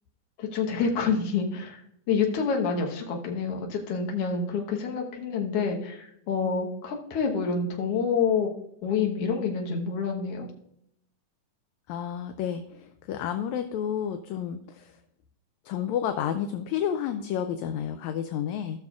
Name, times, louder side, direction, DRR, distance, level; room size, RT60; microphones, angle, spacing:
voice 1, 0.4-8.5 8.8-10.5, left 5 dB, 60° left, 1 dB, 1.9 m, -27 dB
voice 2, 11.9-15.0 15.7-18.8, left 9 dB, 80° left, 7 dB, 1.7 m, -31 dB
16.5 x 6.3 x 2.4 m, 0.73 s
omnidirectional pair, 3.5 m